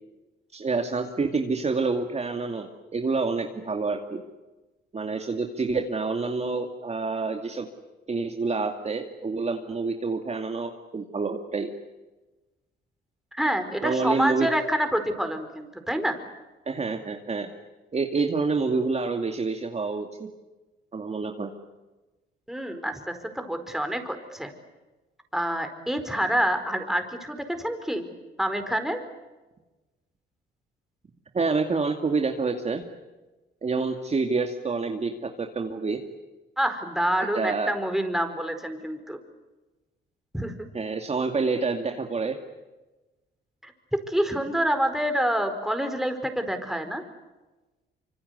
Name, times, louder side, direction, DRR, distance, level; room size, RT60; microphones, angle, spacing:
voice 1, 0.5-4.2 4.9-7.7 8.1-11.7 13.8-14.5 16.7-17.5 17.9-20.3 20.9-21.5 31.3-32.8 33.6-36.0 37.3-37.8 40.7-42.4, right 4 dB, 35° right, 4 dB, 2.4 m, -27 dB
voice 2, 13.3-16.2 22.5-24.5 25.3-28.0 28.4-29.0 36.6-39.2 40.3-40.5 43.6-47.0, equal, ahead, 7 dB, 4.6 m, -27 dB
25.5 x 25.5 x 8.2 m, 1.1 s
cardioid pair, 90°, 20 cm